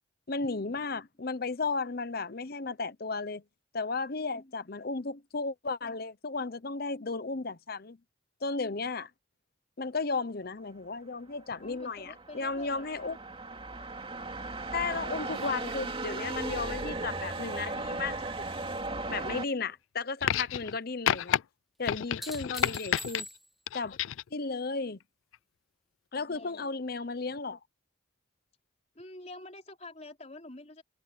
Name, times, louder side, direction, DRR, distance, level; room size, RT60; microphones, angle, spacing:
voice 1, 0.3-3.4 3.7-8.0 8.4-9.1 9.8-13.2 14.7-18.4 19.1-21.4 21.8-23.3 23.7-24.0 24.3-25.0 26.1-27.6, left 4 dB, 50° left, 0.9 m, -34 dB
sound 1, 11.5-19.5, right 2 dB, 25° right, 2.7 m, -37 dB
voice 2, 11.6-13.1 22.6-22.9 26.2-26.7 28.9-30.8, left 2 dB, 35° left, 4.3 m, -48 dB
sound 2, 15.3-18.8 19.2-19.8 21.9-23.7 26.3-26.4, equal, ahead, 1.6 m, -48 dB
sound 3, 20.2-20.8 21.1-21.4 21.9-23.2 23.7-24.3 25.3-25.4, left 10 dB, 75° left, 0.4 m, -30 dB
head